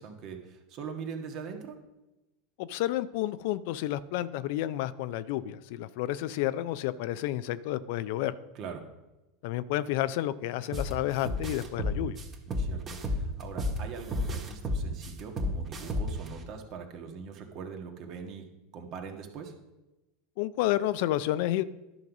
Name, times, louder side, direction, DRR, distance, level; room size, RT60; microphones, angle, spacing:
voice 1, 0.0-1.7 8.5-8.8 12.5-18.4 18.7-19.5, right 6 dB, 50° right, 4 dB, 1.5 m, -42 dB
voice 2, 2.6-8.3 9.4-12.2 20.4-21.6, left 14 dB, 65° left, 15 dB, 0.4 m, -30 dB
sound 1, 10.7-10.9 11.2-13.8 14.1-16.3, left 1 dB, 35° right, 1.5 m, -31 dB
10.5 x 4.0 x 6.0 m, 1.0 s
hypercardioid pair, 95°, 0 cm